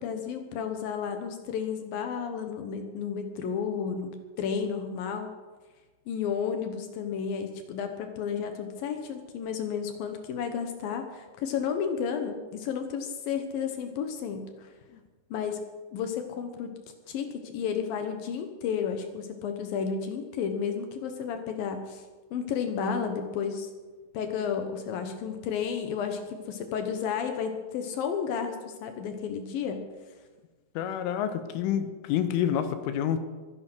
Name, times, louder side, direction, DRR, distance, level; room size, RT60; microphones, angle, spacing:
voice 1, 0.0-5.3 6.1-14.7 15.3-15.7 15.9-16.7 17.1-22.0 22.3-23.7 24.1-29.8, left 7 dB, 70° left, 6 dB, 2.3 m, -32 dB
voice 2, 30.8-33.2, left 9 dB, 90° left, 10 dB, 3.6 m, -28 dB
23.0 x 10.0 x 6.2 m, 1.3 s
omnidirectional pair, 5.6 m